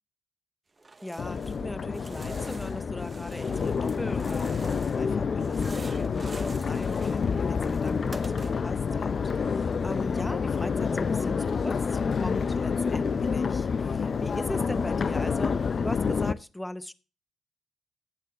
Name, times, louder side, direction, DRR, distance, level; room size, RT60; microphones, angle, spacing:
sound 1, 0.8-1.6 1.9-5.1 5.4-8.8, right 3 dB, 30° right, 0.8 m, -47 dB
voice 1, 1.0-16.9, left 1 dB, 10° left, 0.7 m, -39 dB
Crowd, 1.2-16.3, left 5 dB, 50° left, 0.5 m, -28 dB
15.0 x 8.6 x 2.9 m
cardioid pair, 70°, 0 cm